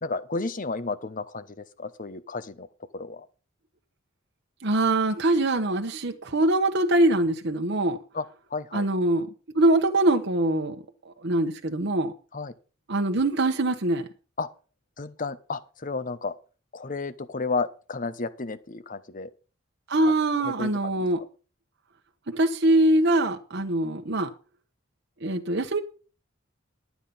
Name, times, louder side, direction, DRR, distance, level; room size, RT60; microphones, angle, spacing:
voice 1, 0.0-2.7 2.9-3.3 8.1-8.2 8.5-8.9 12.3-12.5 14.4-14.5 15.0-16.3 16.7-19.3 20.4-20.9, left 3 dB, 40° left, 0.9 m, -32 dB
voice 2, 4.6-8.0 8.7-9.3 9.5-12.1 12.9-14.1 19.9-21.2 22.3-24.3 25.2-25.8, right 1 dB, 55° right, 1.1 m, -23 dB
12.0 x 8.3 x 5.4 m
head